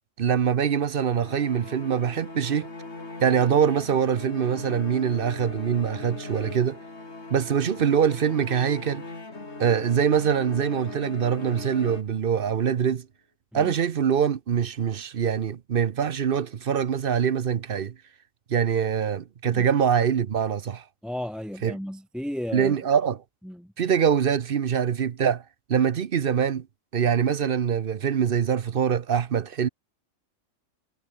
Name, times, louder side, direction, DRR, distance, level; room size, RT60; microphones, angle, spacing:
voice 1, 0.2-2.7 3.2-6.8 7.3-9.0 9.6-13.1 13.5-17.9 18.5-20.8 21.6-21.7 22.5-23.2 23.8-25.4 25.7-26.7 26.9-29.7, right 8 dB, 50° right, 0.8 m, -24 dB
sound 1, 1.1-12.6, left 3 dB, 55° left, 3.8 m, -39 dB
voice 2, 21.0-22.8 23.4-23.7, equal, ahead, 1.1 m, -34 dB
omnidirectional pair, 1.4 m